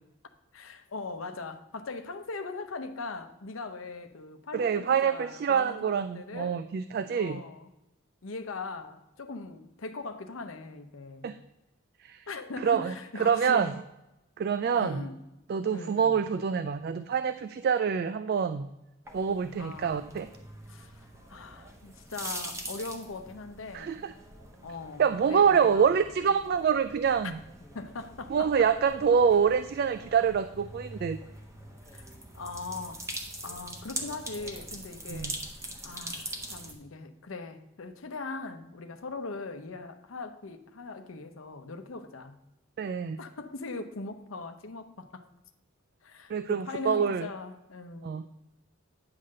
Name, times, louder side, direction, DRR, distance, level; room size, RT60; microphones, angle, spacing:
voice 1, 0.5-6.6 7.1-7.7 8.2-11.3 12.3-13.7 14.8-15.2 15.7-16.2 19.6-20.2 20.7-24.1 24.6-25.9 27.7-28.7 31.9-32.0 32.3-33.0 33.4-35.4 35.8-42.4 43.2-45.3 46.0-48.1, left 3 dB, 80° left, 0.8 m, -40 dB
voice 2, 4.5-7.4 11.2-11.4 12.0-12.2 12.6-13.7 14.4-15.0 15.5-18.7 19.1-20.3 23.7-24.1 25.0-27.4 28.3-31.2 35.1-35.3 42.8-43.2 46.3-47.3 48.0-48.2, right 7 dB, 50° right, 0.3 m, -26 dB
sound 1, 19.0-36.7, right 1 dB, 15° right, 1.0 m, -43 dB
9.7 x 3.8 x 6.4 m
head